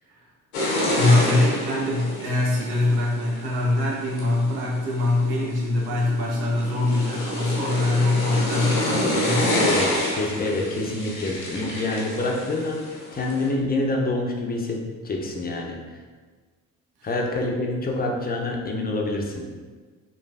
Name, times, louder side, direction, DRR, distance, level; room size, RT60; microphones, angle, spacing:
sound 1, 0.5-13.5, left 1 dB, 90° left, 0.7 m, -28 dB
voice 1, 0.9-9.6 17.0-17.1, left 2 dB, 65° right, -3 dB, 0.9 m, -23 dB
voice 2, 9.6-15.8 17.0-19.5, left 2 dB, 20° left, 0 dB, 0.5 m, -27 dB
3.1 x 2.5 x 2.3 m, 1.4 s
hypercardioid pair, 50°, 42 cm